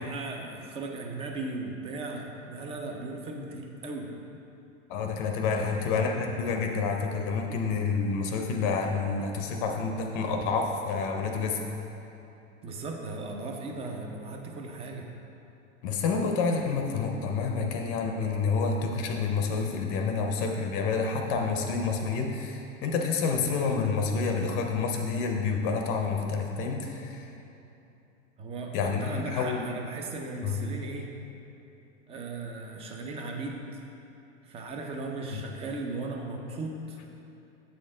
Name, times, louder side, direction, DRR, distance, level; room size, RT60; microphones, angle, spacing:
voice 1, 0.0-4.1 5.6-5.7 12.6-15.1 28.4-31.1 32.1-33.8 34.4-37.0, right 3 dB, 15° right, 2 dB, 0.4 m, -37 dB
voice 2, 4.9-11.6 15.8-27.2 28.7-29.6 30.4-30.6 35.3-35.4, left 4 dB, 45° left, 3 dB, 0.6 m, -28 dB
7.5 x 4.3 x 3.7 m, 2.9 s
hypercardioid pair, 125°, 39 cm